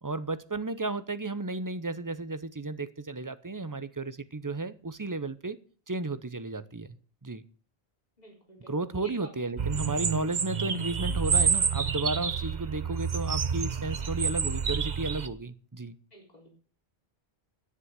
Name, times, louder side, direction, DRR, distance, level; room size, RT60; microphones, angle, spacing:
voice 1, 0.0-5.6 5.9-7.0 7.2-7.4 8.7-16.0, right 3 dB, 20° right, 0.7 m, -33 dB
voice 2, 8.2-9.3 16.1-16.5, right 1 dB, 40° left, 4.4 m, -49 dB
sound 1, 9.6-15.3, right 6 dB, 45° right, 0.9 m, -29 dB
11.0 x 9.9 x 8.2 m
omnidirectional pair, 1.1 m